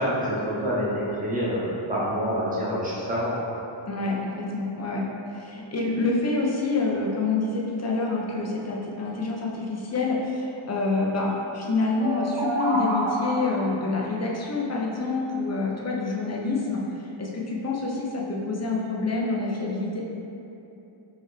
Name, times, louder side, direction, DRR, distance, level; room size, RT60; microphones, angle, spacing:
voice 1, 0.0-3.5, equal, 15° right, -8 dB, 1.0 m, -27 dB
voice 2, 3.9-5.1 5.3-16.8 17.2-20.0, left 3 dB, 35° left, -2 dB, 0.6 m, -27 dB
sound 1, 12.0-13.8, right 2 dB, 65° right, 0.6 m, -28 dB
4.7 x 3.4 x 3.2 m, 2.9 s
wide cardioid pair, 155°, 49 cm